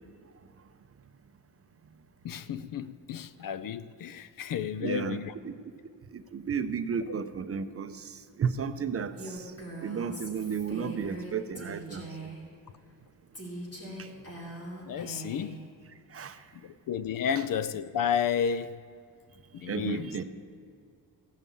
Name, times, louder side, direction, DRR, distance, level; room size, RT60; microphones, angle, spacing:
voice 1, 2.2-5.3 14.8-15.7 16.5-18.8 19.5-20.2, left 8 dB, 55° left, 0.5 m, -32 dB
voice 2, 4.8-5.2 5.4-5.5 6.1-9.5 9.8-12.1 14.0-14.1 16.1-16.4 19.6-20.2, right 6 dB, 35° right, 0.5 m, -33 dB
Female speech woman speaking, 9.2-12.5 13.3-15.6, right 1 dB, 35° left, 2.8 m, -41 dB
15.5 x 5.4 x 8.3 m
wide cardioid pair, 150°, 41 cm